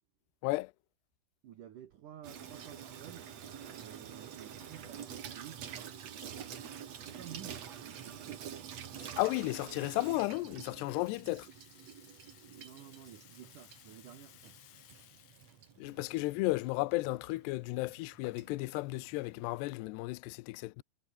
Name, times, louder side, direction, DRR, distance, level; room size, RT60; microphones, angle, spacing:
voice 1, 1.4-3.3 3.7-6.6 7.1-8.8 11.3-11.5 12.1-14.6, right 11 dB, 75° right, 1.9 m, -52 dB
Water tap faucet / Sink (filling or washing), 2.2-19.7, right 8 dB, 50° right, 2.1 m, -48 dB
voice 2, 9.2-11.5 15.8-20.8, left 21 dB, 90° left, 2.4 m, -34 dB
Rattle (instrument), 9.3-15.8, left 13 dB, 65° left, 3.3 m, -61 dB
omnidirectional pair, 5.8 m